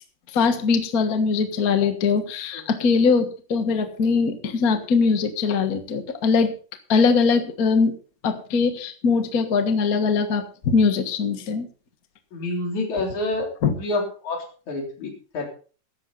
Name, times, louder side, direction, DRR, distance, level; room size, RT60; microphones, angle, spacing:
voice 1, 0.3-6.5 6.9-7.9 8.2-11.6 13.6-13.7, left 5 dB, 45° left, 7 dB, 1.2 m, -21 dB
voice 2, 12.3-13.5 13.8-15.5, left 2 dB, 60° left, 1 dB, 4.8 m, -28 dB
15.0 x 12.0 x 4.0 m, 0.39 s
omnidirectional pair, 3.7 m